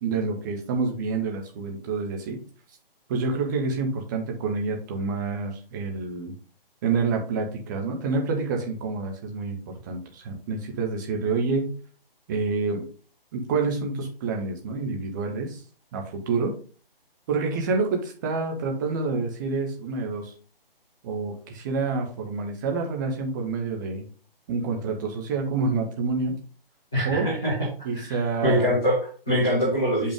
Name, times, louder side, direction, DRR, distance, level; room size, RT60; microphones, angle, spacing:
voice 1, 0.0-2.4 3.1-6.3 6.8-9.6 9.8-11.7 12.3-12.8 13.3-15.6 15.9-16.5 17.3-20.3 21.0-24.0 24.5-26.4 27.0-27.3 27.8-28.7, right 4 dB, 20° right, 2 dB, 1.2 m, -28 dB
voice 2, 26.9-27.5 27.9-30.1, equal, 5° left, -10 dB, 0.4 m, -24 dB
6.6 x 5.6 x 3.7 m, 0.39 s
figure-of-eight pair, 145°, 29 cm